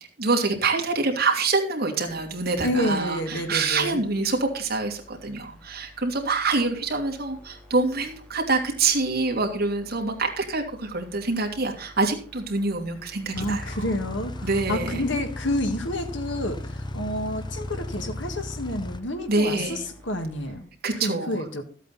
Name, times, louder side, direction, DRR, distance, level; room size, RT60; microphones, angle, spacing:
voice 1, 0.2-13.6 14.4-15.0 19.3-19.8 20.8-21.4, right 3 dB, 55° right, 1 dB, 2.7 m, -26 dB
sound 1, 2.0-20.6, left 1 dB, 5° left, 3.2 m, -51 dB
voice 2, 2.6-4.0 13.3-20.7 21.0-21.6, left 1 dB, 80° left, 6 dB, 1.9 m, -29 dB
sound 2, 13.3-19.0, left 1 dB, 25° left, 0.7 m, -35 dB
13.5 x 8.3 x 4.2 m, 0.42 s
head